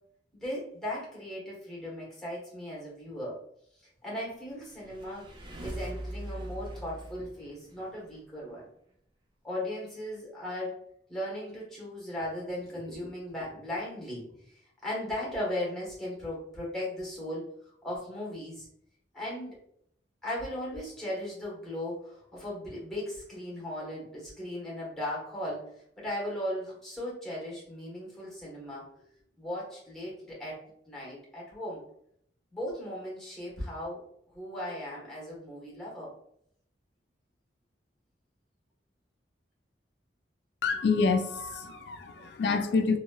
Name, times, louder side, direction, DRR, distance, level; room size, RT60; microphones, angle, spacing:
voice 1, 0.3-3.4 3.8-5.3 5.6-8.7 9.4-10.8 11.1-18.7 19.1-19.6 20.2-25.6 26.0-28.8 29.4-30.6 30.9-31.8 32.5-34.0 34.3-36.1, left 1 dB, ahead, 1.2 m, -37 dB
sound 1, 4.6-8.2, right 1 dB, 25° right, 0.4 m, -41 dB
voice 2, 40.6-43.0, left 4 dB, 65° left, 0.3 m, -27 dB
2.9 x 2.7 x 2.3 m
head